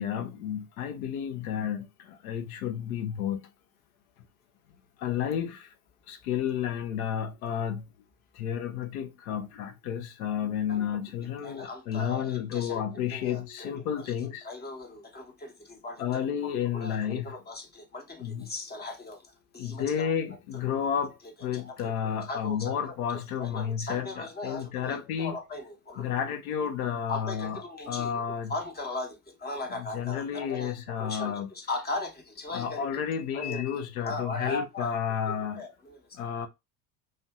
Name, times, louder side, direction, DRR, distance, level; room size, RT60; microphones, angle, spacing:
voice 1, 0.0-3.5 5.0-5.7 6.1-7.8 8.3-14.5 16.0-17.4 18.2-18.5 19.6-25.4 26.0-28.5 29.7-31.5 32.5-35.6 36.1-36.5, left 8 dB, 80° left, 0.7 m, -31 dB
voice 2, 11.4-13.7 14.4-16.0 16.7-19.2 19.5-20.1 20.7-20.8 21.5-21.7 22.3-22.9 23.4-26.0 27.1-28.2 28.5-33.1 33.3-34.9 35.3-36.2, left 2 dB, 25° left, 0.9 m, -38 dB
2.6 x 2.2 x 3.4 m
hypercardioid pair, 85°, 42 cm